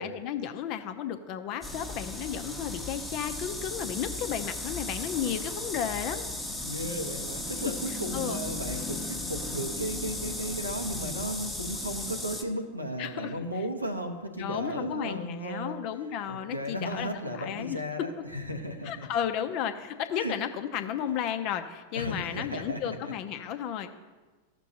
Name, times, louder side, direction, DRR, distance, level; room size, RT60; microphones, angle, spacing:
voice 1, 0.0-6.3 8.1-8.4 13.0-13.3 14.4-17.8 18.8-23.9, left 9 dB, 40° left, 8 dB, 0.7 m, -33 dB
sound 1, 1.6-12.4, left 2 dB, ahead, 1.0 m, -36 dB
voice 2, 6.6-15.8 16.3-19.1 20.2-20.3 21.9-23.1, equal, 85° right, 4 dB, 1.0 m, -35 dB
15.0 x 6.1 x 2.9 m, 1.3 s
figure-of-eight pair, 90°, 0 cm